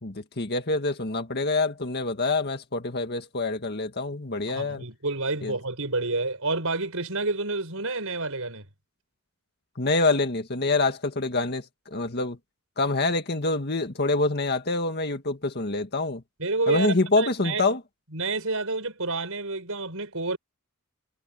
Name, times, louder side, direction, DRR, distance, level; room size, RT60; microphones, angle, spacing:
voice 1, 0.0-4.8 5.4-5.5 9.8-12.4 12.8-16.2 16.7-17.8, left 3 dB, 45° left, 1.9 m, -26 dB
voice 2, 4.5-8.6 16.4-17.6 18.1-20.4, right 3 dB, 70° right, 6.7 m, -29 dB
head